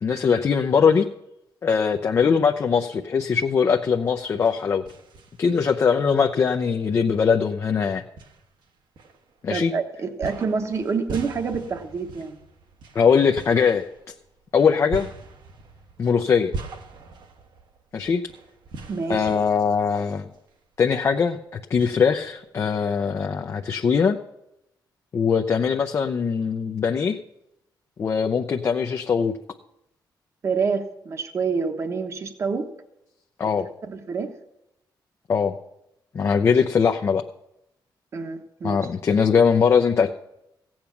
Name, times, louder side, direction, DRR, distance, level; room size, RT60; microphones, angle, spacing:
voice 1, 0.0-1.1 1.6-4.8 5.4-8.0 9.4-9.7 12.9-13.8 14.5-15.1 16.0-16.5 17.9-18.2 19.1-20.3 20.8-24.2 25.1-27.2 28.0-29.3 33.4-33.7 35.3-35.5 36.1-37.2 38.6-40.1, left 6 dB, 35° left, 4 dB, 0.5 m, -21 dB
sound 1, 4.0-5.7 6.2-6.3 7.3-7.4 8.2-9.6 10.2-20.6 20.9-21.0 21.8-22.8, right 4 dB, 65° right, 1.3 m, -41 dB
voice 2, 9.5-12.4 18.9-19.3 30.4-32.7 33.8-34.3 38.1-38.8, right 5 dB, 35° right, 7 dB, 1.1 m, -27 dB
16.0 x 8.7 x 5.9 m, 0.84 s
wide cardioid pair, 175°, 8 cm